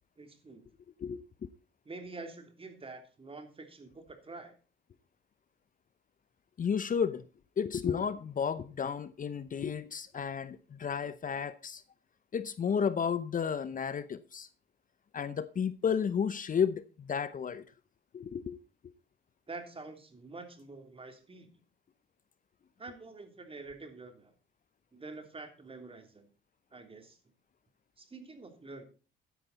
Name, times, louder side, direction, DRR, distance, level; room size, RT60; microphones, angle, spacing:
voice 1, 0.2-0.6 1.8-4.5 19.5-21.5 22.8-24.3 24.9-26.3 26.7-27.2 28.0-28.8, right 3 dB, 30° right, 3.2 m, -47 dB
voice 2, 6.6-7.2 7.6-11.8 12.3-14.5 15.1-17.6 18.1-18.6, left 7 dB, 40° left, 0.8 m, -32 dB
12.0 x 10.5 x 4.1 m
cardioid pair, 90°, 20 cm